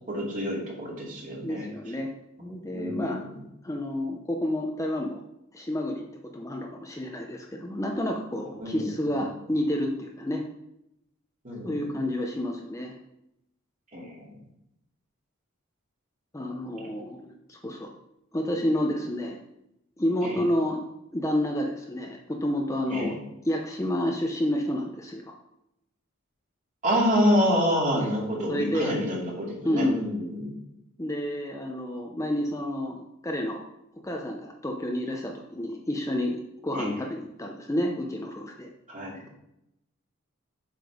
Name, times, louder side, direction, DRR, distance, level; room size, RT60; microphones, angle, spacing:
voice 1, 0.1-1.7 2.7-3.3 8.6-9.2 11.4-12.0 13.9-14.3 20.2-20.4 22.9-23.2 26.8-30.5 36.7-37.0 38.9-39.2, equal, 40° right, -4 dB, 2.9 m, -27 dB
voice 2, 1.4-2.1 2.4-3.2 3.6-5.2 5.5-10.4 11.6-12.9 16.3-17.9 18.3-19.4 20.0-20.8 21.1-23.1 23.4-25.3 28.0-28.1 28.5-28.9 29.6-30.0 31.0-33.6 34.0-38.7, left 1 dB, 15° left, 1 dB, 0.7 m, -30 dB
7.8 x 5.1 x 5.0 m, 0.84 s
head